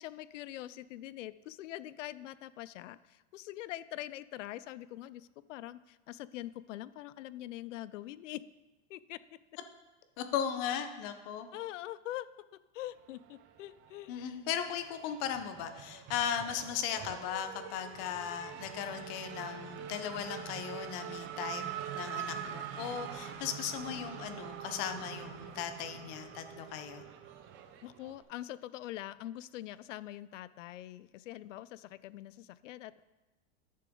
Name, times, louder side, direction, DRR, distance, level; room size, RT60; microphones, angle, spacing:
voice 1, 0.0-8.4 8.9-9.2 11.5-12.3 12.5-14.4 27.8-33.0, left 14 dB, 90° left, 17 dB, 0.5 m, -44 dB
voice 2, 10.2-11.5 14.1-27.0, left 9 dB, 50° left, 8 dB, 1.0 m, -37 dB
Race car auto racing / Accelerating revving vroom, 13.2-14.2 14.5-28.2, right 9 dB, 35° right, 0.7 m, -44 dB
10.5 x 6.6 x 3.8 m, 1.1 s
supercardioid pair, 140°, 36 cm